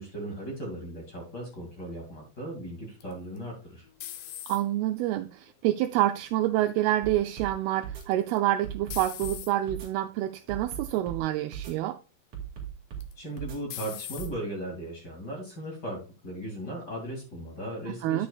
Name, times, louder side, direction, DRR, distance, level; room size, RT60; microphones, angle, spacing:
voice 1, 0.0-3.8 13.2-18.3, right 1 dB, 30° left, 2.5 m, -37 dB
sound 1, 3.0-4.9 5.5-6.0 8.0-8.4 8.9-9.5 10.3-10.5 11.0-11.1 13.0-13.4 13.7-14.3, left 11 dB, 80° left, 1.9 m, -40 dB
voice 2, 4.5-12.0 17.9-18.3, right 14 dB, 85° right, 2.3 m, -27 dB
sound 2, 7.0-7.5 7.8-8.0 8.6-9.4 9.7-9.9 10.5-11.2 11.5-11.7 12.3-13.1 13.4-13.6 14.2-14.3, right 9 dB, 50° right, 3.2 m, -37 dB
9.8 x 8.3 x 2.4 m
omnidirectional pair, 4.8 m